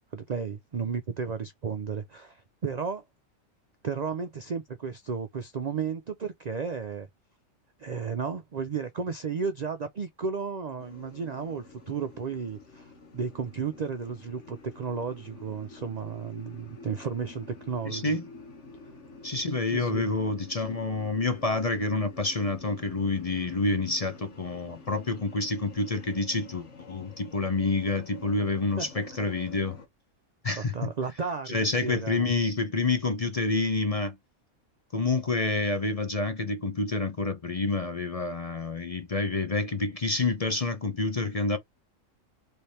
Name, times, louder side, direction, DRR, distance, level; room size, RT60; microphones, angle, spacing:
voice 1, 0.1-3.0 3.8-7.1 7.8-18.2 19.7-20.1 28.8-28.9 30.6-32.3, right 5 dB, 65° right, 0.4 m, -33 dB
sound 1, 10.8-29.9, left 3 dB, 60° left, 1.6 m, -48 dB
voice 2, 17.8-18.2 19.2-29.8 30.4-30.9 31.5-34.2 34.9-41.6, left 3 dB, 35° left, 0.7 m, -28 dB
3.4 x 3.3 x 4.2 m
omnidirectional pair, 1.4 m